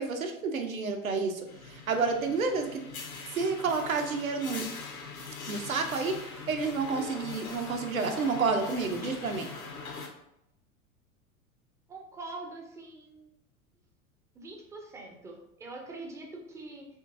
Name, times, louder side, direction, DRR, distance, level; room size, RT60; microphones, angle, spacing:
voice 1, 0.0-2.8 3.3-4.6 5.5-9.5, right 4 dB, 75° right, 5 dB, 0.8 m, -30 dB
sound 1, 1.5-10.1, left 4 dB, 75° left, 0.9 m, -42 dB
voice 2, 11.9-13.3 14.3-16.9, right 2 dB, 10° right, 1 dB, 0.4 m, -44 dB
6.5 x 2.5 x 2.6 m, 0.82 s
figure-of-eight pair, 85°, 42 cm